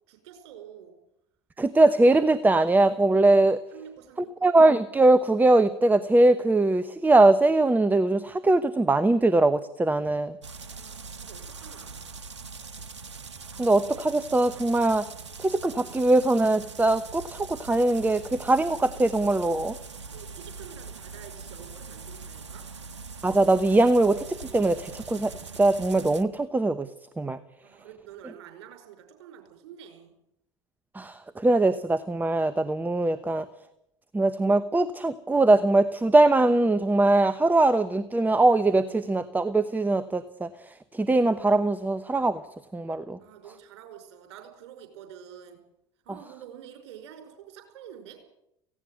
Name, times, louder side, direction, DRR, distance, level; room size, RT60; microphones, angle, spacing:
voice 1, 0.1-0.9 3.7-4.5 10.8-12.1 20.1-22.7 27.6-30.1 43.2-45.6 46.1-48.2, right 9 dB, 65° right, 6 dB, 5.3 m, -47 dB
voice 2, 1.6-3.6 4.4-10.3 13.6-15.1 15.4-19.8 23.2-24.2 24.5-25.3 25.6-26.9 27.2-27.4 30.9-33.5 34.1-40.5 40.9-42.4 42.7-43.2, right 2 dB, 10° right, 14 dB, 1.0 m, -21 dB
sound 1, 10.4-26.2, right 4 dB, 85° right, 1.1 m, -42 dB
17.5 x 16.5 x 9.3 m, 0.81 s
hypercardioid pair, 70°, 15 cm